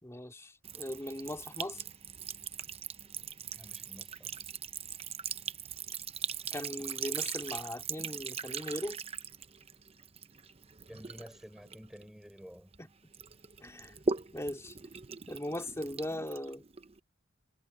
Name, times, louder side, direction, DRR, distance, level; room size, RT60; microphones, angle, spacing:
voice 1, 0.0-1.8 6.5-9.0 12.8-12.9 13.6-14.0 14.3-14.7 15.3-16.6, left 1 dB, 15° left, 3.4 m, -39 dB
Sink (filling or washing) / Trickle dribble, 0.6-12.8 13.1-17.0, right 6 dB, 30° right, 0.8 m, -40 dB
voice 2, 3.5-4.5 10.9-12.7, equal, ahead, 5.8 m, -51 dB
head